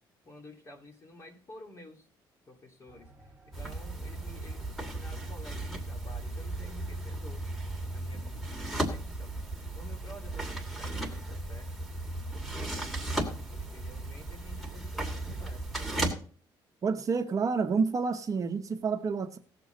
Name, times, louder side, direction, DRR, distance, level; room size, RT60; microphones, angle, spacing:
voice 1, 0.2-2.1 2.5-7.5 7.9-9.4 9.7-11.9 12.3-16.2, left 1 dB, 35° left, 3 dB, 2.7 m, -51 dB
sound 1, 2.9-8.0, right 1 dB, 15° right, 1.7 m, -57 dB
sound 2, 3.5-16.1, right 2 dB, ahead, 2.6 m, -36 dB
voice 2, 16.8-19.4, right 5 dB, 40° right, 6 dB, 1.0 m, -29 dB
18.0 x 7.1 x 3.9 m, 0.42 s
cardioid pair, 120°, 9 cm